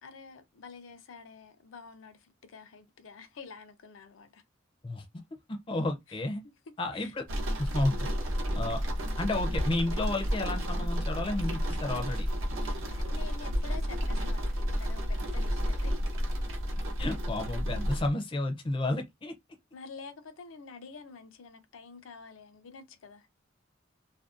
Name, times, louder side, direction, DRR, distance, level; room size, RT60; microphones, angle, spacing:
voice 1, 0.0-4.4 6.1-6.5 6.9-7.1 12.9-16.0 19.7-23.3, left 5 dB, 85° left, 0.5 m, -48 dB
voice 2, 5.5-6.4 6.8-7.3 7.6-8.1 8.6-8.8 9.2-12.3 17.0-19.3, left 2 dB, 25° left, 0.4 m, -31 dB
sound 1, 7.3-18.1, equal, 80° right, 0.7 m, -31 dB
2.5 x 2.1 x 2.4 m
head